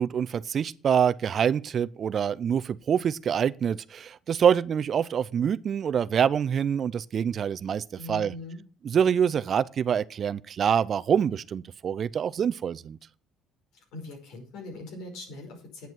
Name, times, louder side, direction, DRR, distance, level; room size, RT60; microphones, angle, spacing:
voice 1, 0.0-8.3 8.8-13.0, right 8 dB, 45° right, 0.5 m, -25 dB
voice 2, 8.0-8.6 13.7-15.9, left 2 dB, 80° left, 5.1 m, -41 dB
9.2 x 8.2 x 6.1 m
cardioid pair, 110°, 0 cm